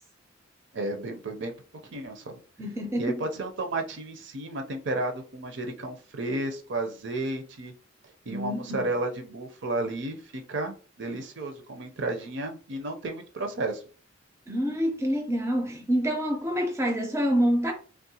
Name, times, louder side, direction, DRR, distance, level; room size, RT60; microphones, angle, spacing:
voice 1, 0.7-1.5 1.8-2.4 3.0-7.7 8.3-13.8, right 2 dB, 60° right, 0.6 m, -32 dB
voice 2, 2.6-3.2 8.3-8.9 14.5-17.7, equal, 15° right, 0.5 m, -27 dB
3.6 x 2.1 x 2.7 m
head